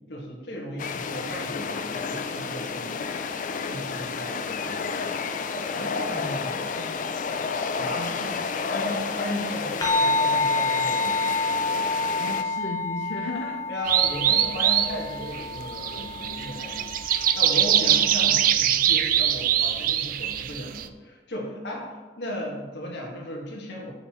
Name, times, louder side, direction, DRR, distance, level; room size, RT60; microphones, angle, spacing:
voice 1, 0.1-3.0 3.6-6.8 7.8-8.1 8.7-11.3 13.7-23.9, equal, 65° left, -1 dB, 1.5 m, -36 dB
sound 1, 0.8-12.4, left 5 dB, 45° left, 0.4 m, -31 dB
voice 2, 6.1-6.9 7.9-8.7 12.2-13.6, left 2 dB, 85° left, -1 dB, 0.6 m, -36 dB
sound 2, 9.8-18.5, left 3 dB, 20° left, 0.7 m, -29 dB
sound 3, 13.9-20.9, right 10 dB, 50° right, 0.3 m, -23 dB
6.6 x 6.6 x 3.0 m, 1.3 s
head